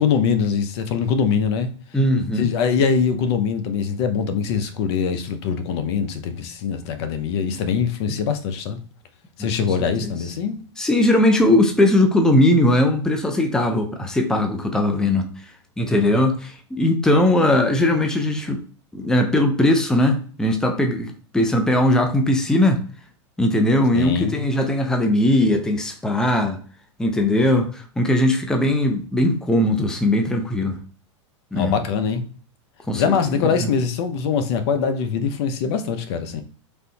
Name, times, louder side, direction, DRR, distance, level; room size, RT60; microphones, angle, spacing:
voice 1, 0.0-1.7 2.4-8.8 9.4-10.6 23.9-24.4 31.5-32.2 32.9-36.4, left 6 dB, 60° left, 0.6 m, -23 dB
voice 2, 1.9-2.5 8.1-8.2 9.4-9.7 10.0-10.1 10.8-15.3 15.8-18.6 18.9-22.8 23.4-26.6 27.0-30.8 31.5-31.8 32.9-33.0 33.3-33.7, left 1 dB, 5° left, 0.5 m, -19 dB
3.2 x 2.6 x 2.8 m
hypercardioid pair, 115°, 16 cm